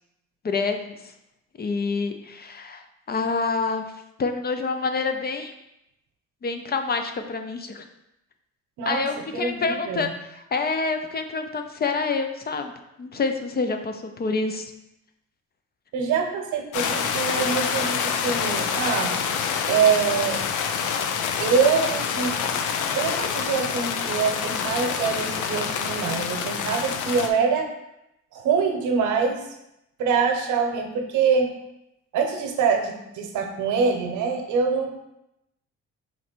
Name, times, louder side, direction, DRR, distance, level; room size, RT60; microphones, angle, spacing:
voice 1, 0.4-1.1 1.6-3.8 4.2-5.5 6.4-7.8 8.9-12.7 13.0-14.7, left 4 dB, 30° left, 6 dB, 0.5 m, -27 dB
voice 2, 9.3-10.1 15.9-19.1 19.7-20.4 21.4-22.4 22.9-27.7 28.3-29.5 30.0-31.5 32.1-34.9, right 6 dB, 80° right, 3 dB, 0.8 m, -24 dB
sound 1, 16.7-27.3, left 7 dB, 80° left, 0.5 m, -27 dB
3.7 x 3.2 x 4.4 m, 0.85 s
cardioid pair, 90°, 30 cm